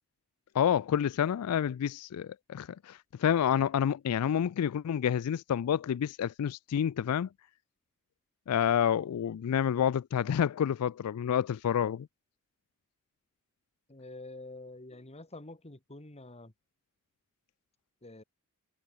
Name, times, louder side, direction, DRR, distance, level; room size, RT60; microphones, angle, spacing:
voice 1, 0.5-7.3 8.5-12.1, left 9 dB, 90° left, 0.3 m, -29 dB
voice 2, 13.9-16.5 18.0-18.2, left 2 dB, 30° left, 2.3 m, -47 dB
head